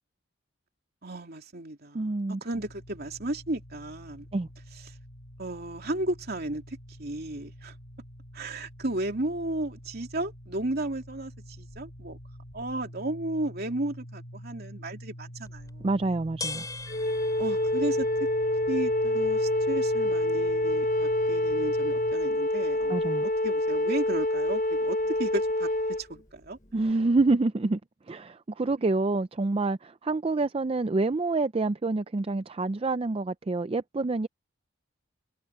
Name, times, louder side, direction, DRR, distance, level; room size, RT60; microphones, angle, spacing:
voice 1, 1.0-4.3 4.9-5.0 5.4-7.7 8.3-12.2 12.5-15.9 17.4-18.3 18.7-23.0 23.4-25.7 26.0-26.6, right 1 dB, 50° right, 3.0 m, -34 dB
voice 2, 1.9-2.4 4.3-4.5 15.8-16.6 22.9-23.3 26.7-27.8 28.1-34.3, right 3 dB, 30° right, 0.4 m, -27 dB
sound 1, 2.5-22.1, equal, 90° left, 4.1 m, -46 dB
sound 2, 15.4-26.9, left 3 dB, 15° left, 7.2 m, -46 dB
Wind instrument woodwind instrument, 16.9-26.0, left 1 dB, 40° left, 0.9 m, -26 dB
head